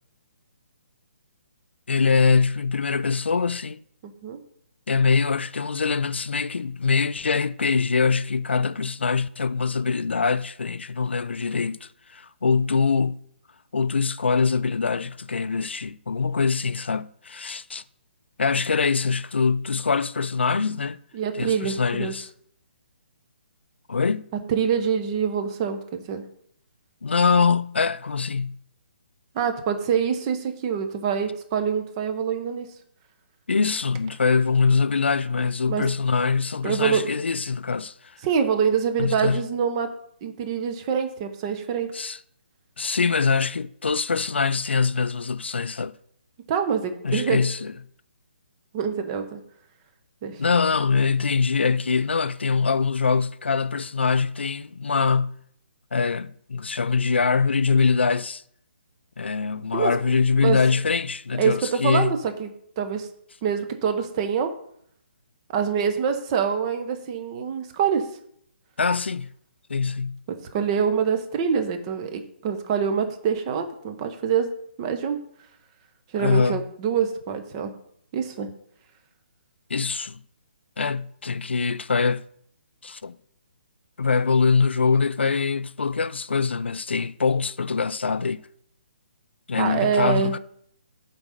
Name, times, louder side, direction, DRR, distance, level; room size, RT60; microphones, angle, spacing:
voice 1, 1.9-3.8 4.9-13.2 13.7-17.8 18.4-21.0 21.3-22.3 23.9-24.3 27.0-28.6 33.5-38.2 39.0-39.4 41.9-42.2 42.8-45.9 47.0-47.7 50.4-55.3 55.9-58.4 59.2-62.1 68.8-69.3 69.7-70.2 76.2-76.6 79.7-80.2 80.8-82.2 82.8-83.2 84.0-88.4 89.5-90.4, left 5 dB, 70° left, 0.3 m, -23 dB
voice 2, 4.0-4.4 21.1-22.1 24.5-26.2 29.3-32.7 35.7-35.8 36.6-37.1 38.2-39.9 40.2-41.9 46.5-47.4 48.7-49.4 50.2-50.4 59.7-59.9 60.4-60.6 61.4-62.5 62.8-63.1 63.4-64.5 65.5-68.0 70.3-74.5 74.8-75.2 76.1-77.7 78.1-78.5 89.6-90.3, right 7 dB, 30° right, 1.0 m, -25 dB
8.0 x 4.1 x 5.2 m
figure-of-eight pair, 135°, 6 cm